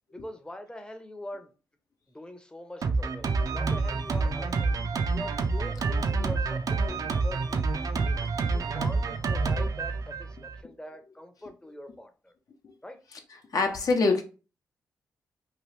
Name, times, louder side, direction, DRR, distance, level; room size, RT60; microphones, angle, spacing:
voice 1, 0.1-1.5 2.1-4.8 5.1-8.2 8.5-12.3 12.8-13.0, left 1 dB, 10° left, 0.7 m, -43 dB
Drum kit, 2.8-10.6, right 4 dB, 55° right, 0.4 m, -28 dB
voice 2, 13.5-14.2, left 3 dB, 60° left, 0.7 m, -24 dB
2.9 x 2.4 x 3.2 m
supercardioid pair, 55°, 7 cm